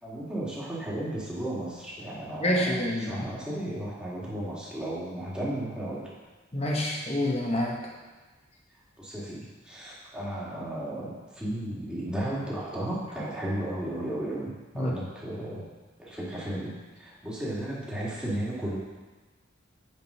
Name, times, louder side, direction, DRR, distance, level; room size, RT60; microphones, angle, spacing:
voice 1, 0.0-6.1 9.0-15.7 16.0-18.8, right 1 dB, 5° right, -7 dB, 2.0 m, -34 dB
voice 2, 2.4-3.3 6.5-7.8 14.7-14.9, left 1 dB, 35° left, -1 dB, 1.4 m, -27 dB
7.6 x 5.3 x 5.6 m, 1.3 s
head